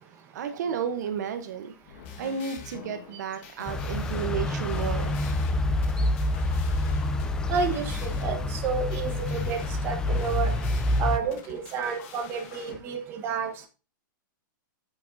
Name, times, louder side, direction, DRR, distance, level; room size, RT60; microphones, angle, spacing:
voice 1, 0.3-1.7 2.2-5.2, right 7 dB, 55° right, 8 dB, 0.8 m, -32 dB
sound 1, 1.8-12.8, left 5 dB, 40° left, 1.5 m, -45 dB
sound 2, 3.7-11.2, left 2 dB, 5° left, 0.3 m, -27 dB
voice 2, 7.5-10.5 11.0-13.5, right 6 dB, 20° right, 4 dB, 1.1 m, -30 dB
9.0 x 8.1 x 2.6 m, 0.33 s
supercardioid pair, 170°, 11 cm